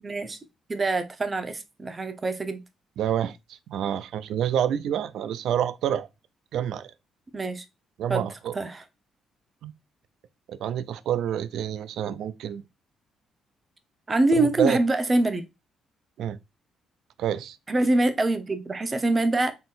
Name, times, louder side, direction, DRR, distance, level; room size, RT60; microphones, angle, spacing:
voice 1, 0.0-0.4 0.7-2.6 7.3-7.6 8.1-8.3 8.5-8.8 14.1-15.5 17.7-19.5, right 2 dB, 30° right, 0.9 m, -24 dB
voice 2, 3.0-6.1 6.5-6.9 8.0-8.5 9.6-9.7 10.5-12.6 14.4-14.8 16.2-16.4 17.2-17.6, right 9 dB, 75° right, 0.4 m, -28 dB
3.9 x 3.9 x 2.5 m
cardioid pair, 90°, 0 cm